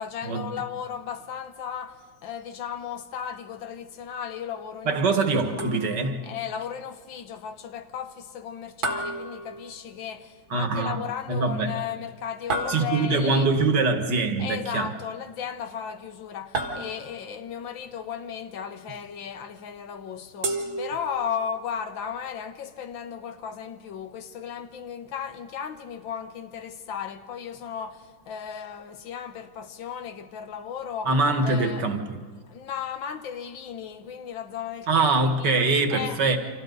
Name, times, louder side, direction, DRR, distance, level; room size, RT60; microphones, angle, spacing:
voice 1, 0.0-5.0 6.2-13.5 14.4-31.1 31.4-31.9 32.5-35.1 35.4-35.5 35.9-36.2, left 8 dB, 80° left, 1.8 m, -35 dB
voice 2, 4.9-6.3 10.5-11.0 11.3-11.7 12.7-14.9 31.1-32.2 34.9-36.4, right 3 dB, 65° right, 2.2 m, -23 dB
sound 1, 5.6-6.2 8.8-10.1 12.5-13.4 16.5-17.4 20.4-21.5, right 2 dB, 90° right, 2.7 m, -32 dB
29.5 x 26.0 x 4.0 m
omnidirectional pair, 2.1 m